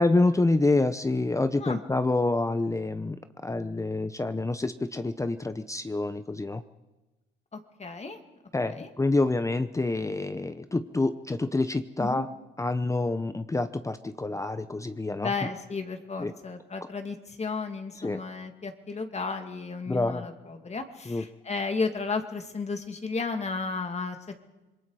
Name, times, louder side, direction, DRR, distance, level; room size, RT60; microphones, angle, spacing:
voice 1, 0.0-3.2 3.4-6.6 8.5-12.3 12.6-15.3 16.2-16.3 18.0-18.2 19.9-20.2 21.1-21.2, left 2 dB, 15° left, 11 dB, 0.8 m, -27 dB
voice 2, 7.5-8.2 8.6-8.9 12.0-12.2 15.2-24.2, left 4 dB, 35° left, 6 dB, 2.4 m, -33 dB
26.5 x 21.5 x 4.9 m, 1.1 s
cardioid pair, 90°, 20 cm